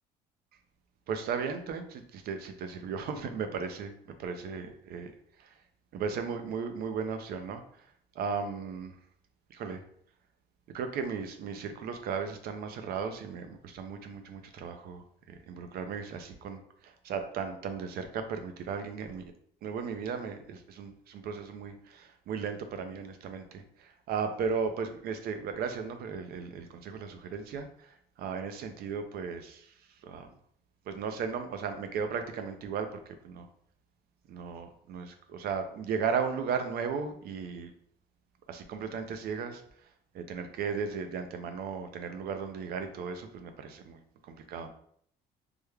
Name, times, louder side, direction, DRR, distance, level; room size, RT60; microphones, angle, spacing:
voice 1, 1.1-3.9 4.2-5.1 5.4-5.6 5.9-7.9 8.1-9.0 9.5-9.8 10.7-19.3 19.6-30.3 30.9-33.5 34.3-37.7 38.5-39.9 40.1-44.0 44.3-44.7, right 6 dB, 65° right, 7 dB, 0.5 m, -36 dB
3.4 x 2.2 x 3.2 m, 0.65 s
cardioid pair, 110°, 17 cm